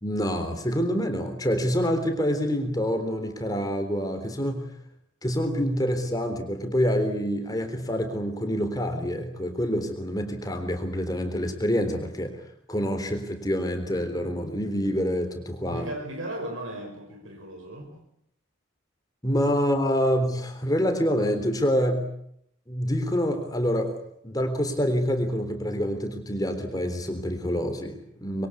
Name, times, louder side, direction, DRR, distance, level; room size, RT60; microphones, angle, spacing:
voice 1, 0.0-4.7 5.2-12.4 12.7-15.8 19.2-22.1 22.7-24.0 24.2-28.5, equal, 15° left, 6 dB, 3.6 m, -26 dB
voice 2, 15.7-18.0, right 1 dB, 70° right, 3 dB, 5.3 m, -36 dB
26.0 x 23.0 x 8.5 m, 0.72 s
head